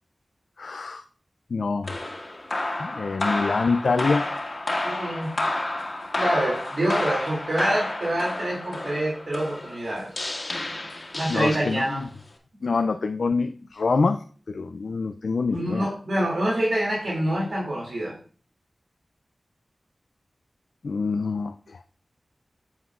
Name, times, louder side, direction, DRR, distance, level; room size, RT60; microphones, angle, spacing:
voice 1, 0.6-1.0 1.5-2.0 2.8-4.3 11.3-12.1 12.6-15.9 20.8-21.8, left 4 dB, 85° left, 8 dB, 0.3 m, -26 dB
sound 1, 1.8-12.0, left 2 dB, 55° left, 1.8 m, -30 dB
voice 2, 4.8-5.3 6.1-10.1 11.1-12.0 15.5-18.1, right 1 dB, 75° right, -4 dB, 2.5 m, -26 dB
9.5 x 7.2 x 2.4 m, 0.42 s
cardioid pair, 40°, 0 cm